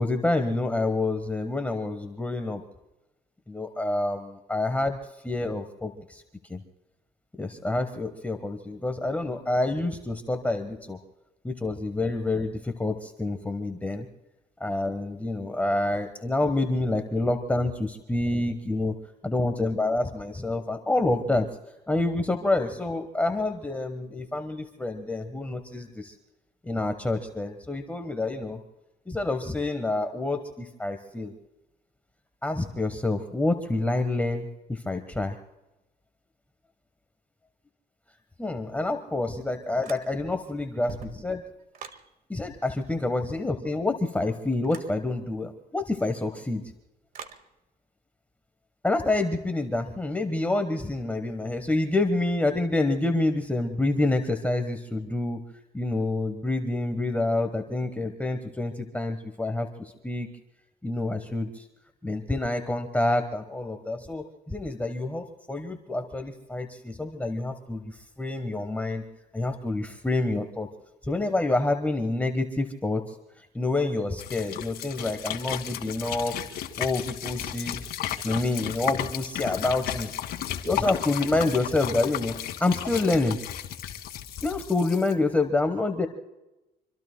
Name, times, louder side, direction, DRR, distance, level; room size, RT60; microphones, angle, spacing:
voice 1, 0.0-2.6 3.5-5.0 5.2-6.2 6.5-6.6 7.4-11.0 11.4-14.1 14.6-18.9 19.2-21.5 21.9-26.1 26.6-28.6 29.1-31.3 32.4-35.4 38.4-41.4 42.3-46.6 48.8-55.4 55.7-60.3 60.8-61.6 62.0-69.0 69.3-70.7 71.1-73.0 73.4-76.4 76.8-77.8 78.2-80.1 80.6-83.4 84.4-86.1, left 2 dB, 10° left, 6 dB, 1.2 m, -27 dB
sound 1, 39.8-40.4 40.7-42.1 44.6-45.0 47.1-47.5, right 7 dB, 55° right, 1.7 m, -43 dB
sound 2, 74.2-85.1, left 11 dB, 70° left, 1.8 m, -34 dB
25.5 x 25.0 x 2.2 m, 0.99 s
cardioid pair, 110°, 17 cm